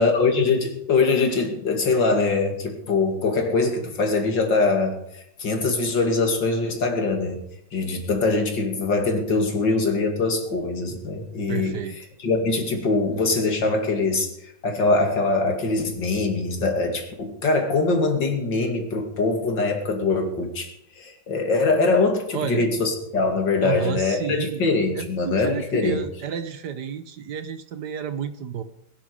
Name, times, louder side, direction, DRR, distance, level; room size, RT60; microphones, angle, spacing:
voice 1, 0.0-5.0 5.4-7.4 7.7-11.8 12.2-26.0, left 3 dB, 85° left, 4 dB, 3.1 m, -23 dB
voice 2, 11.5-12.0 22.3-22.7 23.6-24.6 24.9-28.6, right 7 dB, 70° right, 11 dB, 1.5 m, -31 dB
21.0 x 12.0 x 5.0 m, 0.78 s
omnidirectional pair, 1.9 m